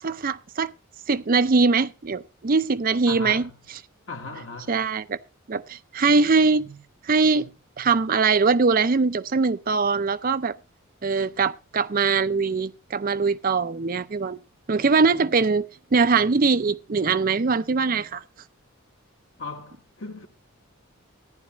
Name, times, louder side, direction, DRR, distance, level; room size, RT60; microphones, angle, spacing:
voice 1, 0.0-0.7 1.1-3.5 4.7-5.2 5.5-6.8 7.0-7.5 7.8-10.5 11.0-14.4 14.7-18.2, right 4 dB, 40° right, 0.5 m, -22 dB
voice 2, 3.1-3.6 4.1-4.8 19.4-20.3, left 3 dB, 60° left, 2.0 m, -37 dB
14.5 x 10.5 x 3.0 m
head